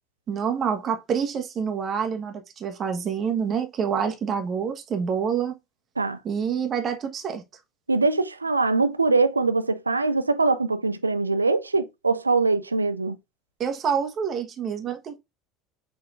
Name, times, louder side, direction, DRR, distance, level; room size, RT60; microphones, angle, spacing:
voice 1, 0.3-5.5 6.2-7.4 13.6-15.2, right 7 dB, 35° right, 1.1 m, -27 dB
voice 2, 7.9-13.2, right 3 dB, 85° right, 0.3 m, -23 dB
5.9 x 3.5 x 2.5 m
figure-of-eight pair, 70°, 0 cm